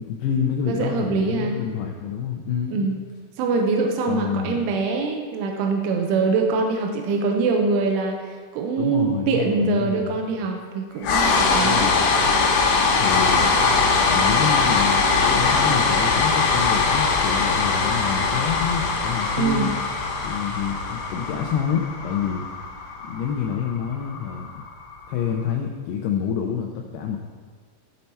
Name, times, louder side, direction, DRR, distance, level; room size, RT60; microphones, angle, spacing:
voice 1, 0.0-2.9 4.1-4.6 8.8-10.2 11.6-12.1 13.0-13.5 14.1-19.7 20.2-22.5 23.0-24.5 25.1-27.2, left 7 dB, 90° left, 2 dB, 2.3 m, -27 dB
voice 2, 0.7-1.6 2.7-3.0 3.4-11.9 13.4-13.5 19.4-19.7, right 4 dB, 90° right, 3 dB, 3.2 m, -23 dB
sound 1, 11.0-25.1, left 4 dB, 70° left, 2.7 m, -21 dB
14.0 x 5.4 x 4.4 m, 1.6 s
omnidirectional pair, 5.6 m